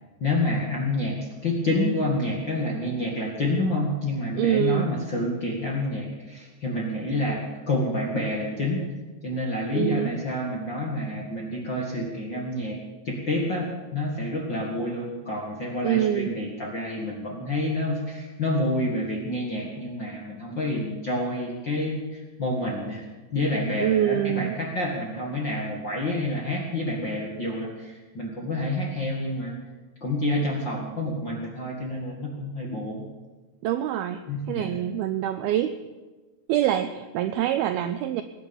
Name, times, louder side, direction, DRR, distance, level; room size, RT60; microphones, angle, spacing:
voice 1, 0.2-8.8 9.2-12.8 13.0-23.0 23.3-29.5 30.0-33.0 34.3-34.8, left 1 dB, 50° left, -2 dB, 1.4 m, -28 dB
voice 2, 4.4-4.9 9.7-10.2 15.8-16.3 23.8-24.6 33.6-35.8 36.5-38.2, right 12 dB, 90° right, 10 dB, 2.2 m, -25 dB
20.5 x 9.9 x 7.1 m, 1.2 s
omnidirectional pair, 5.1 m